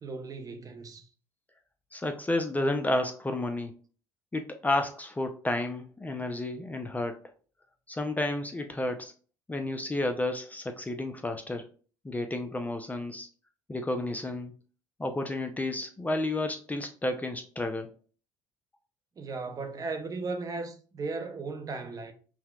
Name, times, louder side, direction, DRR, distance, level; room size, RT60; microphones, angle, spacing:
voice 1, 0.0-1.1 19.2-22.1, right 3 dB, 35° right, 0.7 m, -36 dB
voice 2, 1.9-3.7 4.3-7.2 7.9-9.1 9.5-11.7 12.0-13.3 13.7-14.5 15.0-17.9, left 1 dB, 15° left, 0.5 m, -31 dB
5.6 x 2.1 x 2.3 m
hypercardioid pair, 65°, 10 cm